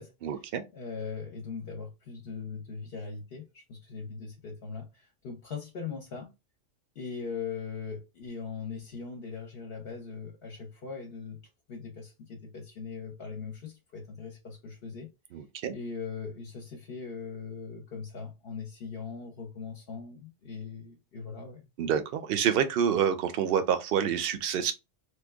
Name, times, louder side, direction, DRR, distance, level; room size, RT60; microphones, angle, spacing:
voice 1, 0.2-0.6 15.3-15.7 21.8-24.7, right 8 dB, 60° right, 0.7 m, -27 dB
voice 2, 0.7-6.3 6.9-11.4 11.7-15.1 15.7-21.7, left 5 dB, 55° left, 0.8 m, -40 dB
3.0 x 2.3 x 3.3 m
omnidirectional pair, 1.3 m